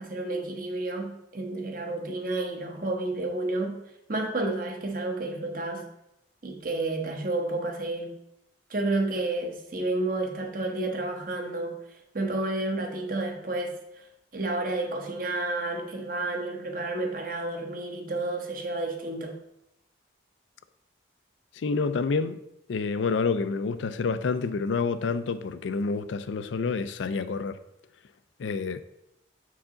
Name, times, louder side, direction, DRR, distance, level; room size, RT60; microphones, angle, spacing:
voice 1, 0.0-3.8 4.1-5.9 6.4-8.2 8.7-11.8 12.1-13.8 14.3-19.4, right 2 dB, 50° right, 1.0 m, -30 dB
voice 2, 21.5-22.4 22.7-27.6 28.4-28.8, left 4 dB, 85° left, 0.4 m, -28 dB
6.7 x 4.7 x 3.7 m
head